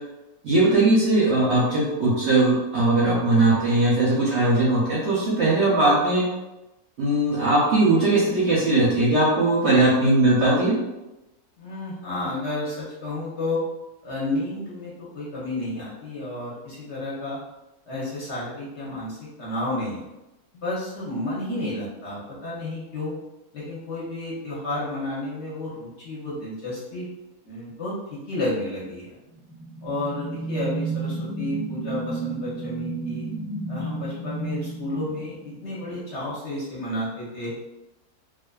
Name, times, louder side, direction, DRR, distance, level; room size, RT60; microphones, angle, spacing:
voice 1, 0.4-6.2 7.0-10.8, right 2 dB, 65° right, -6 dB, 0.7 m, -19 dB
voice 2, 11.6-13.6 14.0-17.4 17.9-20.0 20.5-23.1 23.5-27.1 27.4-29.2 29.8-33.3 33.7-37.5, left 2 dB, 55° left, -7 dB, 0.9 m, -31 dB
sound 1, 29.3-35.9, right 3 dB, 30° right, 0.4 m, -32 dB
2.5 x 2.4 x 2.2 m, 0.99 s
omnidirectional pair, 1.6 m